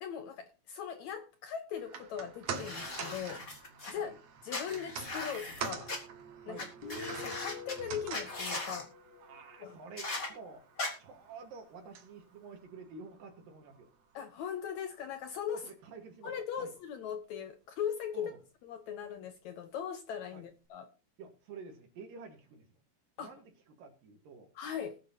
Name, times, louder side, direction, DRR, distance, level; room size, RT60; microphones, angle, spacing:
voice 1, 0.0-3.4 3.9-4.1 4.4-5.9 6.5-6.7 7.1-8.9 9.6-9.8 14.1-15.7 16.2-18.3 18.6-20.9 23.2-23.3 24.6-25.0, left 8 dB, 75° left, 1.8 m, -39 dB
sound 1, 1.8-14.2 14.5-14.6, right 6 dB, 55° right, 2.2 m, -46 dB
sound 2, 2.5-3.9 4.5-6.0 6.6-6.7 6.9-7.7 8.1-8.8 10.0-10.3 10.8-10.9, left 2 dB, 25° left, 2.3 m, -39 dB
Guitar, 6.8-10.3, left 6 dB, 45° left, 1.4 m, -48 dB
voice 2, 9.2-10.6 11.0-13.9 15.5-16.7 18.1-18.4 20.3-20.4 21.2-22.7 23.2-24.5, right 5 dB, 75° right, 3.1 m, -50 dB
20.5 x 9.1 x 2.7 m
omnidirectional pair, 4.1 m